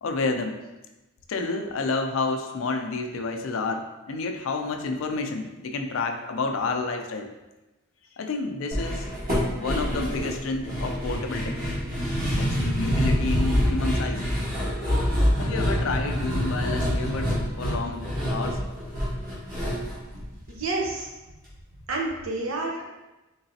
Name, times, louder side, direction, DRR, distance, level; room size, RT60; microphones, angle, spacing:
voice 1, 0.0-0.6 1.3-7.3 8.2-9.1 9.5-11.6 12.3-14.3 15.4-18.6, left 3 dB, 70° left, 5 dB, 0.4 m, -30 dB
sound 1, 8.7-21.0 21.3-21.4 21.7-21.8, equal, 45° right, 1.3 m, -26 dB
voice 2, 20.5-21.1 21.9-22.8, right 2 dB, 85° right, 0 dB, 0.7 m, -29 dB
3.9 x 3.3 x 2.7 m, 1.1 s
head